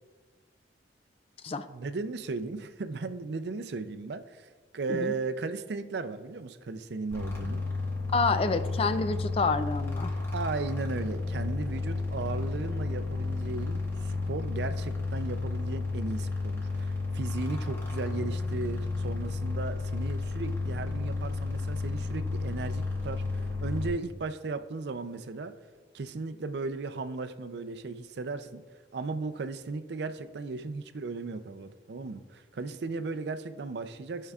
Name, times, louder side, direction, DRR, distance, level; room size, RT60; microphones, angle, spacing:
voice 1, 1.7-7.6 10.3-25.5 25.9-28.6 28.9-34.3, right 3 dB, 65° right, 9 dB, 0.5 m, -36 dB
sound 1, 7.1-23.9, left 3 dB, 15° left, 1.4 m, -32 dB
voice 2, 8.1-10.1, left 4 dB, 30° left, 11 dB, 0.3 m, -28 dB
15.5 x 5.5 x 2.4 m, 1.4 s
head